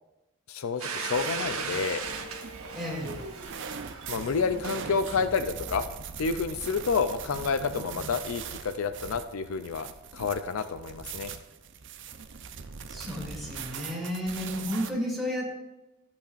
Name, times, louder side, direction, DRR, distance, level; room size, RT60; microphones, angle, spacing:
voice 1, 0.5-2.0 4.1-5.8 6.2-9.9 10.1-11.3, left 5 dB, 70° left, 10 dB, 0.5 m, -29 dB
Domestic sounds home sounds, 0.8-5.4, right 5 dB, 85° right, 1.2 m, -37 dB
sound 1, 1.1-14.9, right 6 dB, 60° right, 0.6 m, -41 dB
voice 2, 2.7-3.2 12.9-15.6, equal, ahead, -4 dB, 2.8 m, -32 dB
13.0 x 8.5 x 2.5 m, 1.0 s
head